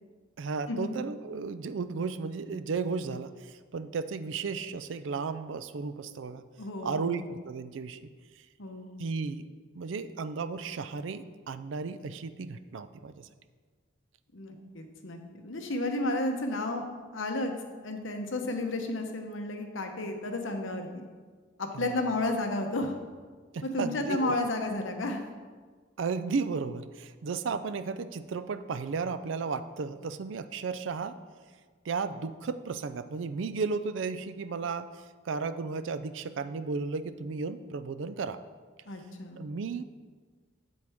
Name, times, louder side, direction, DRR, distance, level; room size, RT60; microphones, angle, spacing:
voice 1, 0.4-6.4 6.8-8.0 9.0-9.5 9.7-13.3 21.7-22.0 23.5-24.3 26.0-31.2 31.8-38.4 39.4-39.8, right 4 dB, 70° right, 13 dB, 0.4 m, -34 dB
voice 2, 6.6-7.2 8.6-9.0 14.3-16.8 17.1-17.5 17.8-21.0 21.6-22.9 23.6-25.2 38.9-39.4, left 2 dB, 75° left, 4 dB, 1.0 m, -32 dB
8.0 x 7.6 x 3.5 m, 1.5 s
head